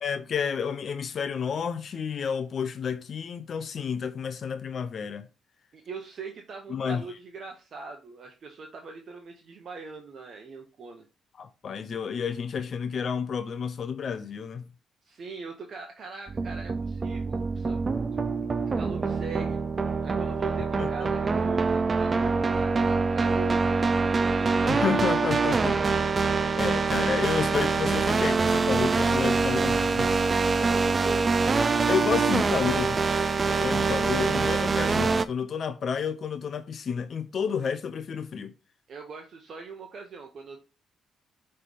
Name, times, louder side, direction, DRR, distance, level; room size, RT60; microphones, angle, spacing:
voice 1, 0.0-5.3 6.7-7.0 11.4-14.7 20.8-21.1 24.6-26.1 26.6-30.2 31.9-33.0 33.4-38.6, left 6 dB, 55° left, 0.5 m, -30 dB
voice 2, 5.7-11.0 15.0-17.8 18.1-18.3 18.7-19.6 20.0-25.0 30.6-31.2 38.9-40.6, right 4 dB, 55° right, 0.9 m, -42 dB
sound 1, 16.3-35.3, right 4 dB, 35° right, 0.4 m, -25 dB
5.6 x 3.3 x 5.3 m
cardioid pair, 90°, 0 cm